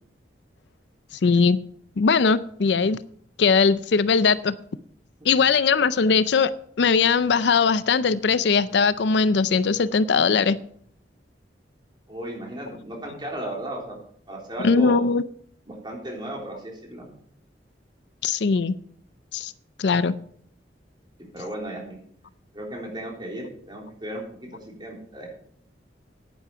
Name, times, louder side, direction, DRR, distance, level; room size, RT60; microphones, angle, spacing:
voice 1, 1.2-1.6 2.0-3.0 3.4-4.6 5.3-6.5 6.8-10.6 14.6-15.2 18.2-18.7 19.3-19.5 19.8-20.1, left 5 dB, 70° left, 16 dB, 0.5 m, -20 dB
voice 2, 12.1-14.0 14.3-15.0 15.7-17.1 21.3-22.0 22.5-25.3, right 1 dB, 25° right, -1 dB, 3.6 m, -35 dB
10.5 x 10.0 x 4.7 m, 0.63 s
head